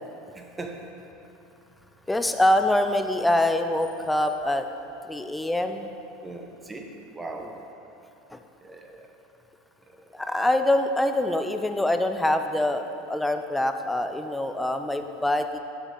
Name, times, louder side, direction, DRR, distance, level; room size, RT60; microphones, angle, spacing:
voice 1, 0.3-0.8 6.2-7.5 8.6-9.1, right 2 dB, 15° right, 2 dB, 0.9 m, -39 dB
voice 2, 2.1-4.7 5.1-5.9 8.3-8.4 10.1-12.8 13.1-15.6, left 1 dB, 5° left, 7 dB, 0.4 m, -24 dB
7.2 x 6.8 x 3.7 m, 2.8 s
hypercardioid pair, 80°, 0 cm